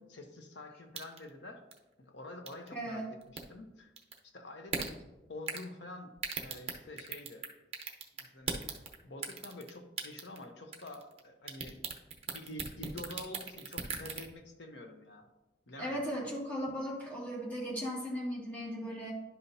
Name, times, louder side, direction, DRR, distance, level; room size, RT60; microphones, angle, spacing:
voice 1, 0.1-1.6 2.0-3.9 4.2-5.0 5.3-7.5 8.2-11.9 12.3-15.3 15.7-16.2, left 1 dB, 90° left, 5 dB, 1.0 m, -47 dB
sound 1, 0.9-1.3 1.7-1.8 2.5-2.7 3.2-3.4 4.0-4.2 4.7-4.9 5.5-5.7 6.2-7.5 7.7-8.9 9.2-9.7 10.0-10.4 10.7-11.2 11.5-14.2, right 5 dB, 35° right, 0.9 m, -37 dB
voice 2, 2.7-3.1 15.8-19.1, equal, 10° left, -5 dB, 2.1 m, -37 dB
11.0 x 5.7 x 2.7 m, 1.0 s
head